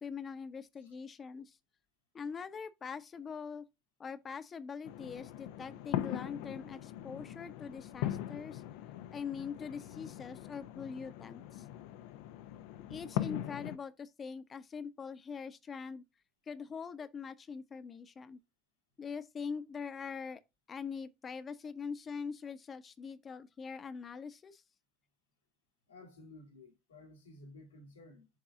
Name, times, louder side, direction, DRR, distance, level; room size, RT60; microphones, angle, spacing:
voice 1, 0.0-1.6 2.1-3.6 4.0-8.6 9.1-11.6 12.9-16.0 16.5-18.4 19.0-20.4 20.7-24.6, left 6 dB, 40° left, 0.8 m, -43 dB
sound 1, 4.8-13.8, left 13 dB, 70° left, 0.6 m, -41 dB
voice 2, 25.9-28.3, left 2 dB, 85° left, 2.0 m, -54 dB
7.5 x 3.5 x 3.7 m
hypercardioid pair, 60°, 0 cm